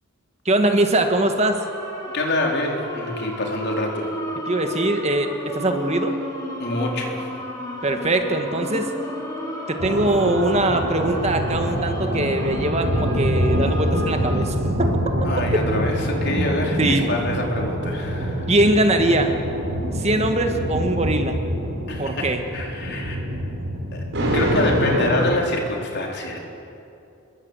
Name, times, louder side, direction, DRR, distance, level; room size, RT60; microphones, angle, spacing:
voice 1, 0.4-1.6 4.5-6.1 7.8-8.9 9.7-14.6 16.8-17.0 18.5-19.4 19.9-21.4 22.0-22.4, right 1 dB, 30° right, 5 dB, 1.6 m, -21 dB
sound 1, 1.4-14.4, equal, 15° left, 5.1 m, -33 dB
voice 2, 2.1-4.1 6.6-7.3 15.2-18.5 21.9-22.3 22.5-23.2 23.9-24.0 24.3-26.4, left 2 dB, 50° left, 1 dB, 4.0 m, -26 dB
sound 2, 9.8-25.3, equal, 55° right, 5.4 m, -25 dB
26.0 x 22.0 x 8.2 m, 2.7 s
head